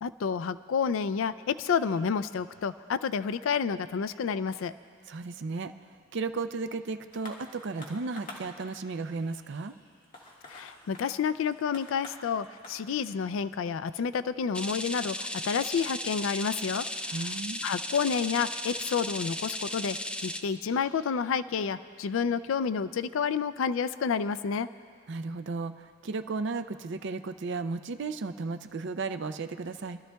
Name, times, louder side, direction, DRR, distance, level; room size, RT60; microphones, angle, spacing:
voice 1, 0.0-4.7 10.5-17.3 17.6-24.7, left 6 dB, 80° left, 14 dB, 0.4 m, -30 dB
voice 2, 5.1-9.7 17.1-17.6 25.1-30.0, right 3 dB, 65° right, 9 dB, 0.5 m, -34 dB
sound 1, 7.1-16.0 16.7-16.8, left 2 dB, 45° left, 1.8 m, -50 dB
sound 2, 14.5-20.4, left 1 dB, 5° left, 0.4 m, -35 dB
28.0 x 12.5 x 2.3 m, 2.3 s
head